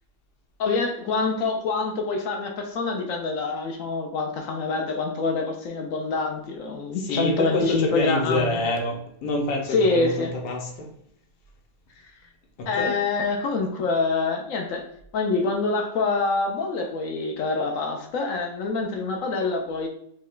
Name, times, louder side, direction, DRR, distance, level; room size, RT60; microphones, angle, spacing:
voice 1, 0.6-8.6 9.7-10.3 12.7-14.9 15.1-19.9, left 3 dB, 60° left, 3 dB, 1.0 m, -26 dB
voice 2, 7.0-10.9 12.6-12.9, left 1 dB, 85° left, 2 dB, 1.4 m, -27 dB
5.2 x 2.3 x 3.8 m, 0.73 s
omnidirectional pair, 1.7 m